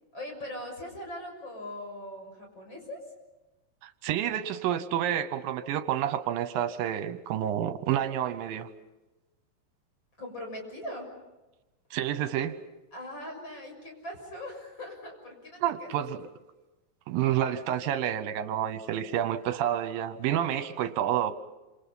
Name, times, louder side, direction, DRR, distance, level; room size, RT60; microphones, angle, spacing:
voice 1, 0.1-3.0 10.2-11.1 12.9-16.1, left 1 dB, 30° left, 1 dB, 7.3 m, -40 dB
voice 2, 3.8-8.7 11.9-12.5 15.6-16.2 17.1-21.3, right 11 dB, 80° right, 12 dB, 2.6 m, -29 dB
28.5 x 27.5 x 5.5 m, 1.1 s
omnidirectional pair, 4.1 m